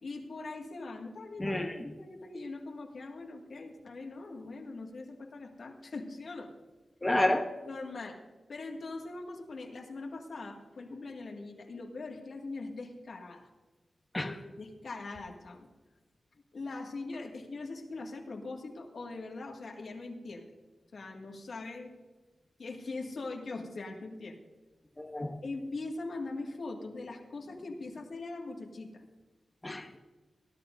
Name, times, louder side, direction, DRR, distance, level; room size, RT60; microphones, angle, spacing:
voice 1, 0.0-1.6 2.0-6.5 7.7-8.2 8.5-13.5 14.2-15.7 16.5-20.5 20.9-22.0 22.6-24.4 25.4-29.0, left 3 dB, 65° left, 1 dB, 2.0 m, -41 dB
voice 2, 1.4-1.7 7.0-7.5 14.1-14.3 25.0-25.3 29.6-30.0, left 1 dB, 20° left, 3 dB, 1.0 m, -29 dB
19.5 x 11.5 x 2.6 m, 1.2 s
wide cardioid pair, 105°, 0 cm